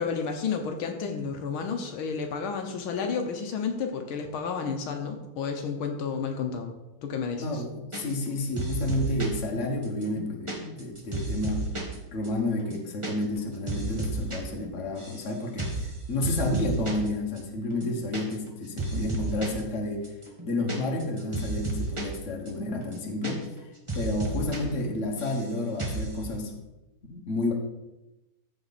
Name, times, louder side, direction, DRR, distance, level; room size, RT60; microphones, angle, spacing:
voice 1, 0.0-6.7 7.0-7.6, left 5 dB, 75° left, 4 dB, 1.6 m, -31 dB
voice 2, 7.4-11.7 12.1-20.1 20.4-23.4 23.9-26.6 27.1-27.5, left 2 dB, 40° left, 1 dB, 1.5 m, -30 dB
sound 1, 7.9-8.3 8.6-9.4 9.8-11.9 12.2-12.3 12.6-13.1 13.4-14.4 14.6-15.3 15.6-15.9 16.2-17.1 17.4-17.5 17.7-18.5 18.8-19.6 20.0-22.2 22.5-22.6 22.8-23.6 23.9-24.6 24.8-25.5 25.8-26.1, right 2 dB, 15° right, 1.2 m, -32 dB
14.0 x 4.8 x 4.1 m, 0.99 s
omnidirectional pair, 2.4 m